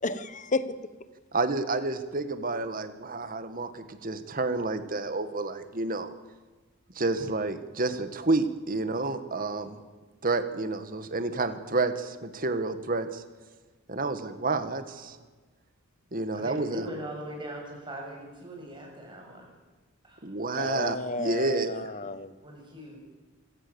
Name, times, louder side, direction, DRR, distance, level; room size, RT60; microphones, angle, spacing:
voice 1, 0.0-0.7 20.5-22.3, left 3 dB, 35° left, 14 dB, 1.1 m, -32 dB
voice 2, 1.3-6.1 6.9-9.8 10.2-13.2 13.9-15.2 16.1-16.9 20.2-21.9, right 3 dB, 40° right, 10 dB, 1.8 m, -30 dB
voice 3, 16.3-19.5 20.0-20.3 21.3-21.5 22.4-23.0, right 1 dB, 20° right, 0 dB, 7.2 m, -40 dB
27.0 x 17.5 x 7.1 m, 1.3 s
head